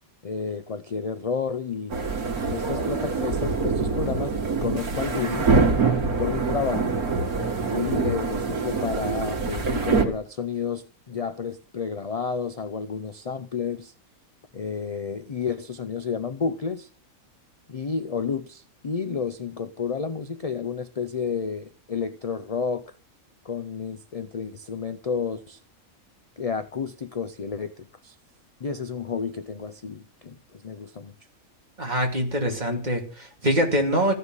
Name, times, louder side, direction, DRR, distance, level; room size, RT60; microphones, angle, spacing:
voice 1, 0.2-2.0 2.5-4.3 4.6-5.6 6.2-7.0 7.7-13.9 14.5-16.9 17.7-22.9 23.4-25.6 26.4-28.2 28.6-31.1 32.5-32.8, left 6 dB, 45° left, 0.4 m, -31 dB
sound 1, 1.9-10.0, right 4 dB, 90° right, 2.6 m, -25 dB
voice 2, 31.8-34.1, equal, 30° right, 2.7 m, -24 dB
15.0 x 6.7 x 9.0 m
omnidirectional pair, 1.5 m